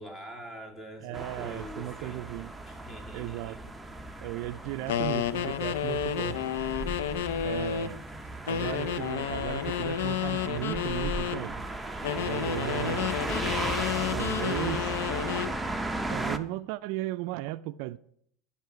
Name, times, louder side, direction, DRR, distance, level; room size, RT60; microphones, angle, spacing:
voice 1, 0.0-2.2 2.7-3.6 7.7-7.9 8.6-9.0, equal, 20° left, 1.9 m, -44 dB
voice 2, 1.0-2.5 3.1-3.6 4.2-6.4 7.4-8.0 8.4-11.7 12.2-13.2 14.1-15.0 16.1-18.0, right 17 dB, 65° right, 0.3 m, -36 dB
sound 1, 1.1-16.4, right 2 dB, 5° right, 0.6 m, -36 dB
sound 2, 4.9-8.0 8.5-11.4 12.0-15.6, left 9 dB, 85° left, 0.5 m, -31 dB
12.0 x 5.6 x 4.7 m
supercardioid pair, 115°, 0 cm